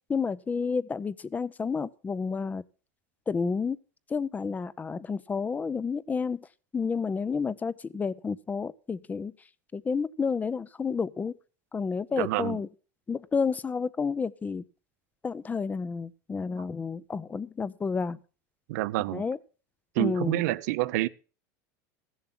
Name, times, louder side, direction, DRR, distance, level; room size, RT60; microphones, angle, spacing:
voice 1, 0.1-2.6 3.3-3.8 4.1-6.5 6.7-9.3 9.7-11.3 11.7-12.7 13.1-14.6 15.2-18.2 19.1-19.4 20.0-20.4, left 5 dB, 15° left, 0.5 m, -30 dB
voice 2, 12.2-12.6 16.6-16.7 18.7-19.2 20.0-21.1, right 18 dB, 75° right, 0.6 m, -28 dB
14.5 x 7.2 x 5.8 m
supercardioid pair, 120°, 9 cm